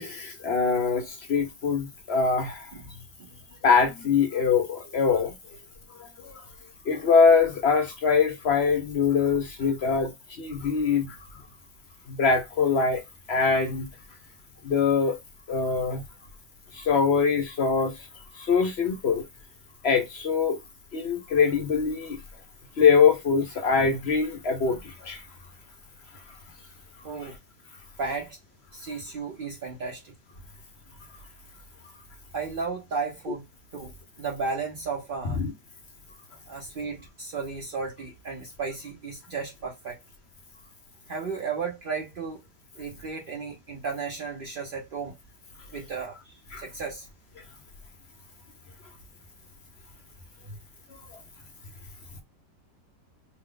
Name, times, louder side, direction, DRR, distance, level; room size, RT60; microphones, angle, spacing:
voice 1, 0.0-2.7 3.6-5.3 5.9-6.4 6.9-10.1 10.4-11.2 12.1-13.0 13.3-13.9 14.6-15.2 15.5-16.0 16.7-17.9 18.3-19.3 19.8-20.6 20.9-22.2 22.8-25.2 35.3-35.5 46.5-46.6 50.9-51.0, left 5 dB, 60° left, 0.7 m, -23 dB
voice 2, 2.7-3.4 9.6-9.7 27.0-27.3 28.0-28.4 28.7-30.1 32.3-33.4 33.7-33.9 34.2-35.4 36.5-40.0 41.1-42.4 42.8-45.2 45.7-47.1 50.5-50.6, right 4 dB, 80° right, 0.4 m, -34 dB
2.8 x 2.1 x 3.7 m
omnidirectional pair, 1.9 m